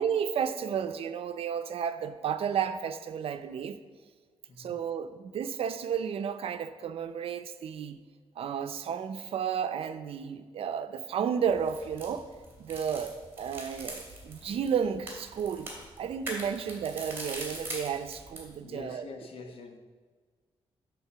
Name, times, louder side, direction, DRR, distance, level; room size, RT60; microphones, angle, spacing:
voice 1, 0.0-3.8 4.6-8.0 8.4-12.2 12.6-15.7 16.0-19.1, right 7 dB, 70° right, 10 dB, 0.6 m, -32 dB
voice 2, 4.5-4.8 18.6-19.8, left 4 dB, 65° left, 4 dB, 1.1 m, -45 dB
sound 1, 11.5-18.5, right 1 dB, 20° right, 2.7 m, -42 dB
11.0 x 4.1 x 6.9 m, 1.5 s
wide cardioid pair, 145°, 10 cm